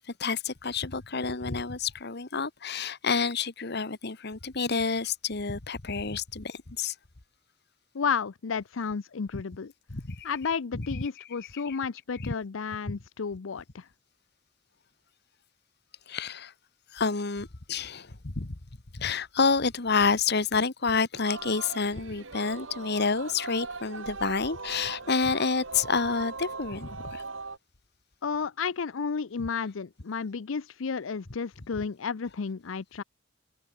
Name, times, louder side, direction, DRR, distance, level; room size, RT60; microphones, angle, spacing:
voice 1, 0.0-6.9 9.9-10.3 10.7-11.0 11.5-11.8 12.2-12.3 16.1-16.5 16.9-18.5 18.9-27.2, left 4 dB, 60° left, 1.5 m, -29 dB
voice 2, 7.9-9.7 10.2-13.9 28.2-33.0, left 5 dB, 90° left, 0.6 m, -32 dB
Singing, 21.1-27.6, right 3 dB, 80° right, 4.1 m, -40 dB
head